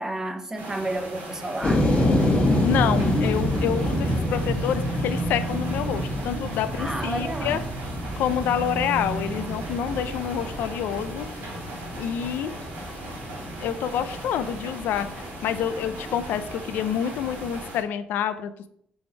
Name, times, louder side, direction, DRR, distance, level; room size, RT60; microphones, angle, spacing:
voice 1, 0.0-1.9 6.8-7.6, right 1 dB, 15° right, 5 dB, 0.9 m, -31 dB
sound 1, 0.6-17.8, right 1 dB, 90° right, 2.2 m, -39 dB
Steam-Train Molli passes through without whistle, 1.6-17.6, left 1 dB, 40° left, 1.3 m, -28 dB
voice 2, 2.6-7.6 8.2-11.3 12.0-12.5 13.6-15.1 15.4-18.5, left 9 dB, 90° left, 12 dB, 0.5 m, -27 dB
sound 2, 3.4-7.3 7.6-11.0, right 3 dB, 65° right, 1.4 m, -37 dB
5.0 x 4.1 x 4.6 m, 0.69 s
cardioid pair, 100°, 3 cm